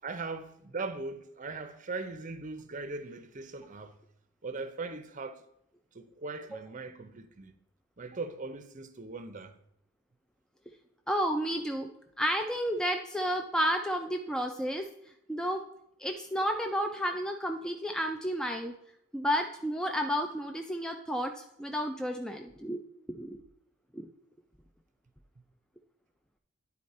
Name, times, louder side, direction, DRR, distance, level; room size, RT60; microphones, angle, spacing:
voice 1, 0.0-3.9 4.4-5.4 5.9-7.5 8.0-9.5, right 3 dB, 35° right, 0.6 m, -39 dB
voice 2, 11.1-11.9 12.2-14.9 15.3-15.6 16.0-18.7 19.1-22.8 23.2-23.4 23.9-24.1, equal, 5° left, 0.3 m, -31 dB
10.0 x 4.2 x 4.2 m
head